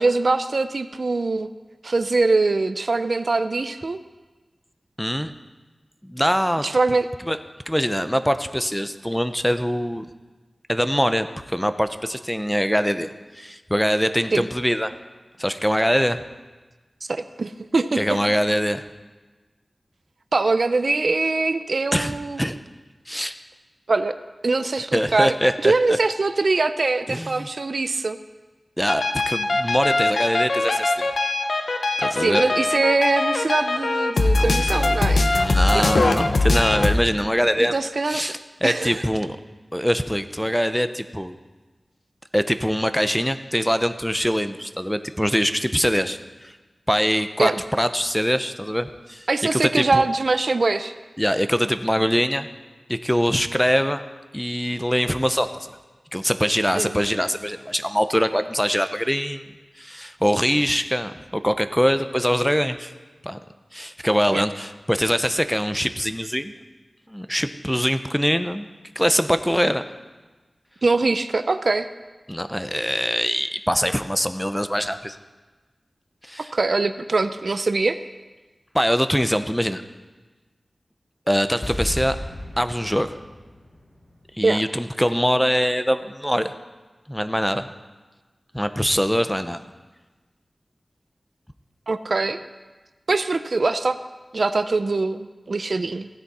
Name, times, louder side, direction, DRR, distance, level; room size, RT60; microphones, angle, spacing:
voice 1, 0.0-1.5 1.8-4.0 6.6-7.1 14.3-14.4 17.1-18.2 20.3-22.5 23.9-24.1 24.4-25.3 25.6-28.2 32.1-35.3 35.7-36.0 37.6-38.3 38.6-39.0 47.4-47.6 49.3-50.9 56.8-57.0 64.3-64.4 70.8-71.9 76.5-78.0 84.4-84.6 91.9-92.4 93.1-94.0 94.3-96.1, right 3 dB, 70° right, 11 dB, 0.5 m, -22 dB
voice 2, 5.0-5.3 6.0-6.7 7.3-7.4 7.7-10.0 10.7-13.1 13.4-14.9 15.4-16.2 18.0-18.8 21.9-22.6 23.1-23.3 24.9-26.0 27.1-27.5 28.8-31.1 32.0-32.4 35.3-37.7 38.1-39.4 39.7-41.3 42.3-46.2 46.4-46.5 46.9-50.0 51.2-52.5 52.9-54.0 54.3-55.7 56.1-59.4 59.8-62.9 63.2-63.4 63.7-66.6 67.1-68.7 69.0-69.8 72.3-75.2 76.3-76.5 78.7-79.8 81.3-82.2 82.6-83.2 84.4-86.5 87.1-87.7 88.5-89.6, equal, 5° left, 10 dB, 0.7 m, -23 dB
sound 1, 28.9-36.9, left 2 dB, 85° left, 0.8 m, -21 dB
sound 2, 81.6-84.8 85.1-85.2, left 1 dB, 40° left, 3.5 m, -34 dB
15.5 x 9.7 x 4.2 m, 1.2 s
wide cardioid pair, 45°, 0 cm